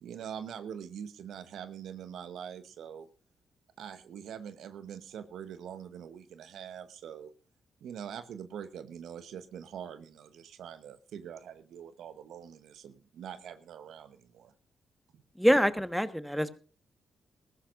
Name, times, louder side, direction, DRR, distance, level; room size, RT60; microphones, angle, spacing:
voice 1, 0.0-3.1 3.8-7.3 7.8-14.5 15.1-15.2, right 8 dB, 75° right, 12 dB, 1.0 m, -44 dB
voice 2, 15.4-16.5, equal, ahead, 11 dB, 1.3 m, -25 dB
20.0 x 15.0 x 2.5 m, 0.34 s
supercardioid pair, 50°, 0 cm